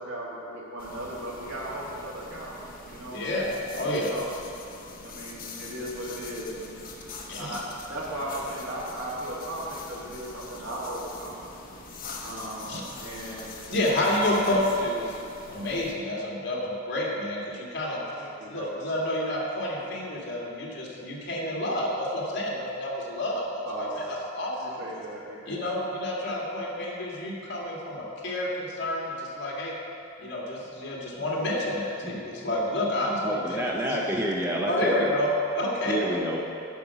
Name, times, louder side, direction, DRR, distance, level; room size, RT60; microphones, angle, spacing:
voice 1, 0.0-3.2 4.1-4.3 5.0-6.9 7.4-11.4 12.2-13.6 14.0-14.1 17.9-18.8 23.7-24.1 24.6-25.6, right 1 dB, 80° right, -5 dB, 2.4 m, -37 dB
sound 1, 0.8-15.9, left 3 dB, 45° left, 1.1 m, -44 dB
voice 2, 3.0-4.1 7.3-7.6 12.7-12.8 13.7-15.2 15.5-18.0 18.5-24.6 25.5-29.7 30.2-33.6 33.9-34.0 34.7-35.3 35.5-36.0, left 1 dB, 60° left, -4 dB, 2.1 m, -29 dB
voice 3, 32.0-32.5 33.2-35.1 35.9-36.4, equal, 15° right, -2 dB, 0.7 m, -29 dB
9.3 x 5.9 x 6.9 m, 2.6 s
head